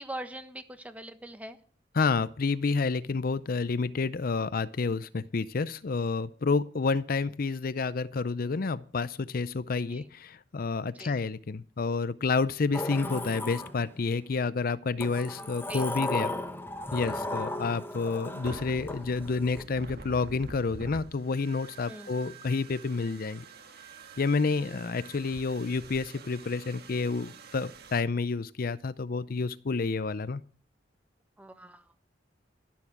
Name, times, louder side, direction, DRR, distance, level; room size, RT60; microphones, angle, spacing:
voice 1, 0.0-1.6 9.9-10.1 10.9-11.2 15.7-16.1 17.1-17.6 21.9-22.1 24.5-25.0 31.4-32.0, right 1 dB, 10° right, 1.3 m, -43 dB
voice 2, 2.0-16.3 16.9-23.4 24.2-30.4, left 4 dB, 55° left, 0.5 m, -29 dB
Sliding door, 12.7-14.2 15.0-19.6, left 2 dB, 10° left, 1.5 m, -36 dB
sound 1, 18.4-28.0, right 3 dB, 60° right, 1.7 m, -47 dB
12.0 x 12.0 x 5.9 m
head